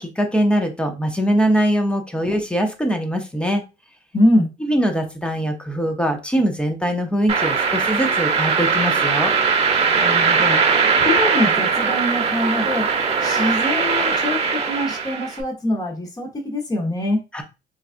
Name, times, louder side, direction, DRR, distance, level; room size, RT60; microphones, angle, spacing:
voice 1, 0.0-3.6 4.6-9.3 17.3-17.4, equal, 5° left, 4 dB, 0.7 m, -22 dB
voice 2, 4.1-4.5 9.9-10.6 11.0-12.9 13.2-17.2, left 1 dB, 20° left, 0 dB, 1.0 m, -23 dB
sound 1, 7.3-15.4, right 5 dB, 35° right, 0.9 m, -20 dB
3.9 x 2.4 x 2.4 m, 0.28 s
cardioid pair, 110°, 17 cm